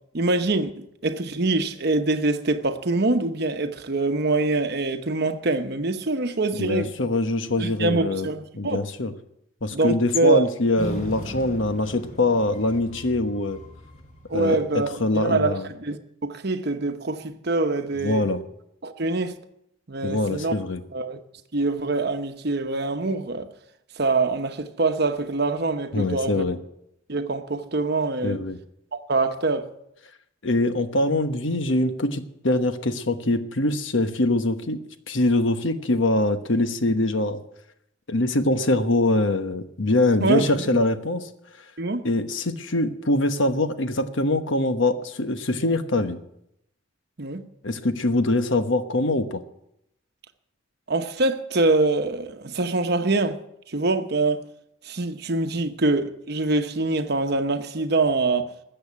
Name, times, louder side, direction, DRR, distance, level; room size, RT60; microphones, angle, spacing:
voice 1, 0.1-6.9 7.6-8.8 9.7-10.5 14.3-18.3 18.8-19.4 19.9-20.6 20.9-21.2 21.5-23.5 24.0-26.4 27.1-28.4 28.9-29.7 40.2-40.7 41.8-42.1 47.2-47.5 50.9-53.4 53.7-54.4 54.8-58.5, right 2 dB, 55° right, 1.0 m, -24 dB
voice 2, 6.5-8.3 8.6-9.1 9.6-13.6 14.3-15.7 18.0-18.4 20.0-20.8 25.9-26.6 28.2-28.6 30.4-34.8 35.1-37.4 38.1-41.3 42.0-46.2 47.6-49.4, left 2 dB, 70° left, 1.2 m, -23 dB
sound 1, 10.8-15.3, left 1 dB, 40° left, 4.1 m, -38 dB
13.5 x 7.9 x 9.6 m
head